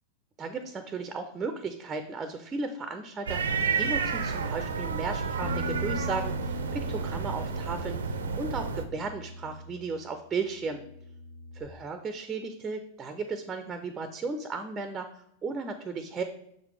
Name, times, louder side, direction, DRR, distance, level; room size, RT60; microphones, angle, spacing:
voice 1, 0.4-3.4 3.8-10.8 11.5-16.2, right 4 dB, 20° right, 8 dB, 0.6 m, -35 dB
sound 1, 3.3-8.8, right 5 dB, 65° right, 0.5 m, -31 dB
Bass guitar, 5.4-10.2 10.5-11.7, left 2 dB, 60° left, 0.7 m, -40 dB
6.7 x 4.8 x 3.3 m, 0.75 s
figure-of-eight pair, 90°, 0 cm